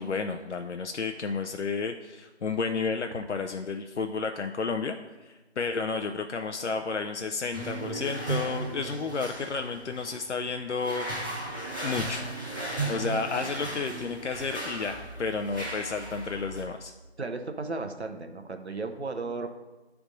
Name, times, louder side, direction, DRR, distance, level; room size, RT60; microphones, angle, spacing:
voice 1, 0.0-11.1 11.8-12.2 12.9-16.9, left 4 dB, 85° left, 5 dB, 0.5 m, -32 dB
sound 1, 7.5-16.6, right 2 dB, 20° right, 0.9 m, -36 dB
voice 2, 17.2-19.5, right 3 dB, 70° right, 6 dB, 0.8 m, -34 dB
9.7 x 3.4 x 3.9 m, 1.2 s
figure-of-eight pair, 165°, 34 cm